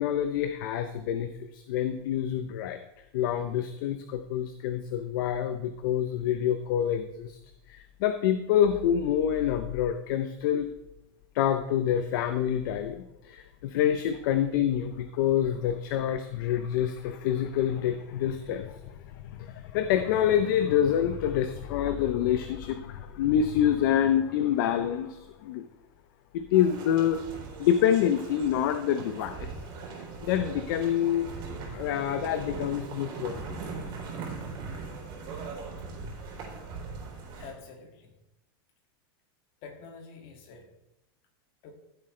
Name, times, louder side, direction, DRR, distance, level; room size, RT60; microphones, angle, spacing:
voice 1, 0.0-2.8 3.1-7.4 7.7-10.7 11.3-25.6 26.3-27.2 27.6-29.5 30.2-31.3 31.5-33.6, left 10 dB, 60° left, 9 dB, 0.7 m, -27 dB
sound 1, 26.5-37.5, right 4 dB, 40° right, 3.4 m, -40 dB
voice 2, 37.4-38.2 39.6-40.7 41.6-41.7, left 5 dB, 45° left, 3 dB, 2.2 m, -47 dB
14.0 x 7.8 x 3.3 m, 0.88 s
supercardioid pair, 145°, 13 cm